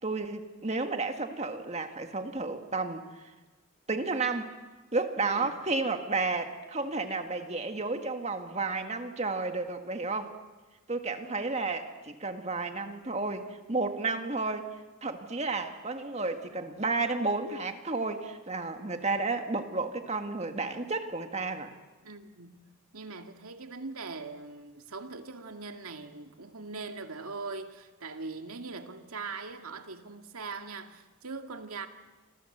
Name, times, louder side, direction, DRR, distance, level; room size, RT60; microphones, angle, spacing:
voice 1, 0.0-3.3 3.9-4.5 4.9-10.4 10.9-14.7 15.0-21.7, right 3 dB, 30° right, 1.8 m, -32 dB
voice 2, 5.2-5.5 22.0-22.6 22.9-31.9, right 4 dB, 90° right, 2.2 m, -41 dB
29.0 x 25.0 x 8.0 m
head